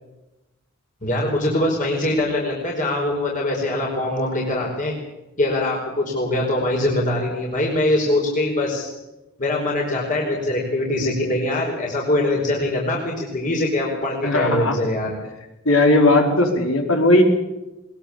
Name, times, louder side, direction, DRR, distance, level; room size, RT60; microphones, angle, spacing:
voice 1, 1.0-4.9 5.4-8.9 9.4-15.1, left 1 dB, 40° left, -1 dB, 4.9 m, -23 dB
voice 2, 14.2-14.8 15.6-17.2, left 2 dB, 75° left, 4 dB, 4.9 m, -17 dB
21.5 x 21.0 x 8.7 m, 1.0 s
head